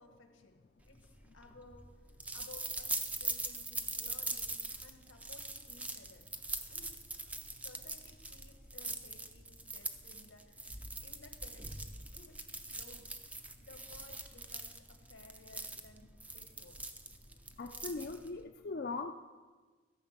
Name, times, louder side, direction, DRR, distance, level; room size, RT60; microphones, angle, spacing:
voice 1, 0.0-6.3 6.7-7.0 7.6-12.4 12.7-13.1 13.6-16.8, left 2 dB, 80° left, 5 dB, 1.5 m, -58 dB
sound 1, 1.0-18.4, right 2 dB, 5° right, 0.4 m, -42 dB
voice 2, 17.6-19.1, left 3 dB, 50° left, 5 dB, 0.5 m, -40 dB
14.5 x 5.8 x 7.4 m, 1.4 s
head